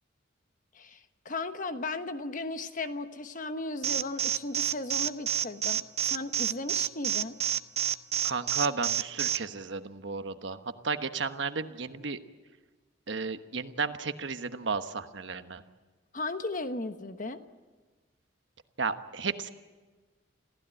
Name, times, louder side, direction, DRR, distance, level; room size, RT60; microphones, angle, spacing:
voice 1, 0.7-7.4 16.1-17.4, left 2 dB, 45° left, 9 dB, 1.2 m, -36 dB
Alarm, 3.8-9.4, right 10 dB, 35° right, 0.7 m, -28 dB
voice 2, 8.2-10.6 10.8-12.2 13.1-15.6 18.8-19.5, right 4 dB, 70° right, 9 dB, 1.2 m, -33 dB
27.0 x 15.5 x 9.0 m, 1.4 s
head